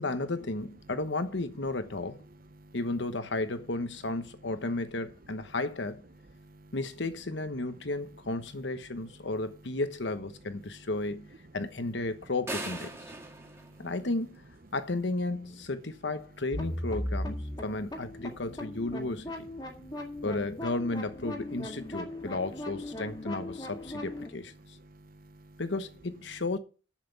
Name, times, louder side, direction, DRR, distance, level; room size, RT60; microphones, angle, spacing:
voice 1, 0.0-2.2 2.7-6.0 6.7-12.9 13.8-14.4 14.7-19.5 20.2-24.5 25.6-26.6, left 2 dB, 65° left, 1.1 m, -33 dB
voice 2, 6.4-6.7 13.2-13.9 19.6-20.2 24.8-25.6, right 1 dB, 50° right, 0.8 m, -55 dB
sound 1, 12.5-14.6, right 2 dB, 15° right, 1.8 m, -40 dB
sound 2, 16.5-24.3, left 1 dB, 20° left, 2.1 m, -38 dB
7.6 x 7.3 x 8.3 m
head